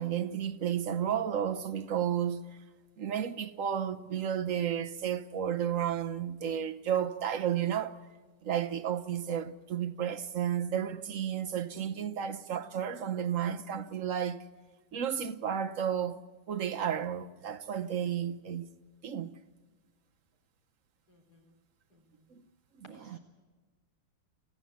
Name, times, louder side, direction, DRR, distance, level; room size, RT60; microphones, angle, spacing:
voice 1, 0.0-2.4 3.0-8.0 8.4-14.4 14.9-16.2 16.5-18.7 19.0-19.4 22.3-22.5 22.8-23.2, right 9 dB, 50° right, 1.1 m, -32 dB
voice 2, 21.1-21.5 21.9-22.3 22.8-23.2, left 1 dB, 55° left, 4.7 m, -59 dB
26.5 x 15.5 x 8.3 m
omnidirectional pair, 2.1 m